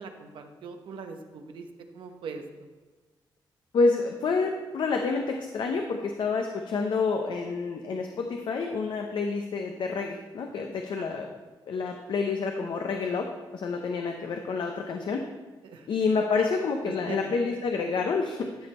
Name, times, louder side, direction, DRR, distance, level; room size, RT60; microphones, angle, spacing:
voice 1, 0.0-2.4 10.9-11.2 15.6-15.9 16.4-16.5 16.8-17.3, right 4 dB, 85° right, 5 dB, 0.9 m, -41 dB
voice 2, 3.7-11.3 11.7-13.3 13.5-15.3 15.9-18.7, left 4 dB, 75° left, 3 dB, 0.7 m, -28 dB
12.5 x 5.3 x 4.3 m, 1.3 s
cardioid pair, 75°, 8 cm